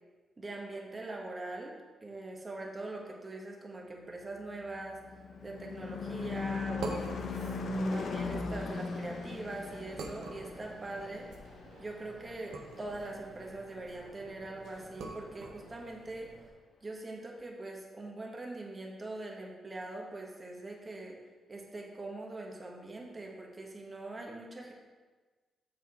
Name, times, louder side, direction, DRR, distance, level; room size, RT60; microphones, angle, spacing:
voice 1, 0.4-1.7 2.0-5.0 5.4-7.3 7.8-11.3 11.8-16.3 16.8-21.2 21.5-24.7, right 2 dB, 25° right, -1 dB, 1.6 m, -42 dB
Car passing by / Truck / Engine, 4.5-13.2, left 3 dB, 70° left, 0.9 m, -38 dB
sound 1, 6.0-16.5, right 3 dB, 75° right, 1.1 m, -47 dB
7.0 x 6.4 x 4.4 m, 1.3 s
cardioid pair, 95°, 0 cm